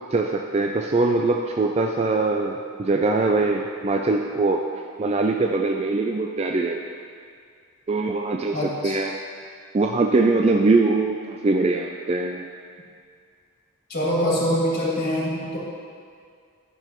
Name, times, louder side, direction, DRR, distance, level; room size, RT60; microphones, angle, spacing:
voice 1, 0.1-4.7 5.0-6.8 7.9-9.2 9.7-12.5, right 3 dB, 30° right, 2 dB, 0.3 m, -22 dB
voice 2, 8.5-8.9 13.9-15.6, equal, 40° left, -6 dB, 2.2 m, -24 dB
13.0 x 6.9 x 3.0 m, 2.2 s
head